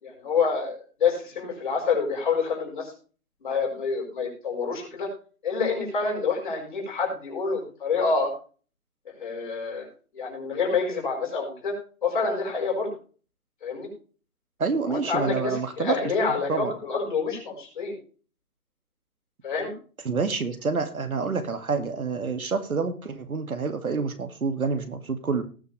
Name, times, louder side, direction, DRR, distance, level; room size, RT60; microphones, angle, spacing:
voice 1, 0.0-2.9 3.4-5.1 5.4-8.3 9.2-9.9 10.1-11.7 12.0-12.9 13.6-13.9 14.9-17.9 19.4-19.7, left 4 dB, 35° left, 0 dB, 6.0 m, -27 dB
voice 2, 14.6-16.0 16.5-16.8 20.0-25.4, right 4 dB, 70° right, 8 dB, 2.3 m, -28 dB
19.0 x 7.1 x 3.4 m, 0.38 s
hypercardioid pair, 170°, 44 cm